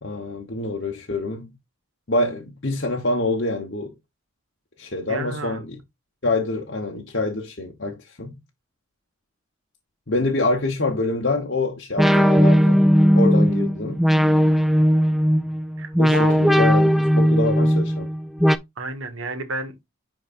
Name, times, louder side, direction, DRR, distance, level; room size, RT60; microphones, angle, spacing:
voice 1, 0.0-1.5 2.1-3.9 4.8-5.8 6.2-8.4 10.1-12.9 13.1-14.0 16.0-18.1, left 2 dB, 60° left, 1.1 m, -26 dB
voice 2, 5.1-5.6 15.8-16.4 18.8-19.8, right 2 dB, 80° right, 1.5 m, -31 dB
sound 1, 12.0-18.6, equal, ahead, 0.3 m, -17 dB
10.5 x 3.8 x 2.6 m
head